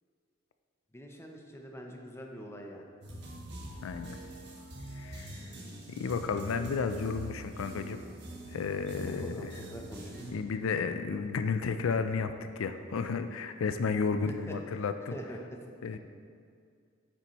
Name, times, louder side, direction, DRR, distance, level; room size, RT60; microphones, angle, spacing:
voice 1, 0.9-2.9 9.0-10.2 14.3-14.5 15.1-15.6, equal, 15° left, 1 dB, 0.7 m, -44 dB
sound 1, 3.0-10.3, right 1 dB, 60° right, 1.3 m, -44 dB
voice 2, 3.8-4.2 4.9-5.5 5.9-8.0 8.5-9.6 10.3-15.1 15.8-16.0, left 5 dB, 90° left, 9 dB, 0.4 m, -32 dB
9.0 x 6.9 x 3.0 m, 2.3 s
head